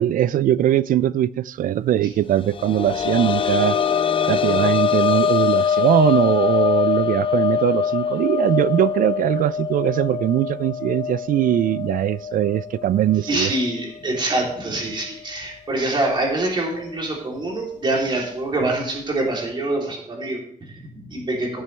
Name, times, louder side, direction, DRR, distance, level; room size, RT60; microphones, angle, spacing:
voice 1, 0.0-3.8 4.3-13.5, right 11 dB, 75° right, 0.4 m, -21 dB
sound 1, 2.3-13.8 14.1-14.2 15.8-15.9, left 7 dB, 40° left, 0.5 m, -23 dB
voice 2, 13.3-21.6, right 2 dB, 35° right, 3.2 m, -25 dB
16.0 x 7.5 x 3.4 m
wide cardioid pair, 180°, 14 cm